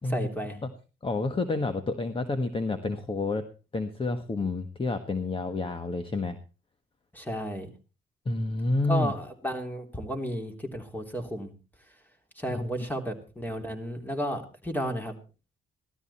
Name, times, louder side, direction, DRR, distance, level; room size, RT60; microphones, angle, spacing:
voice 1, 0.0-0.6 7.1-7.7 8.9-11.5 12.4-15.2, equal, 10° left, 3 dB, 3.3 m, -33 dB
voice 2, 1.0-3.4 3.7-6.4 8.2-9.1 12.5-12.6, left 3 dB, 25° left, 9 dB, 1.4 m, -29 dB
16.5 x 13.0 x 4.3 m, 0.34 s
cardioid pair, 90°, 20 cm